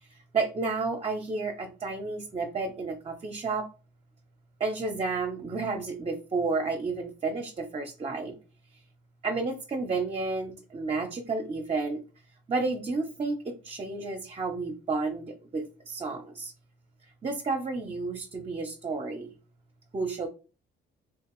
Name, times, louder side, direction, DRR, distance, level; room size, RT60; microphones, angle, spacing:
voice 1, 0.0-3.7 4.6-8.4 8.7-8.8 9.2-12.0 12.5-16.5 17.2-19.3 19.9-20.3, right 3 dB, 30° right, 3 dB, 0.6 m, -31 dB
3.6 x 2.8 x 3.0 m, 0.35 s
cardioid pair, 90°, 20 cm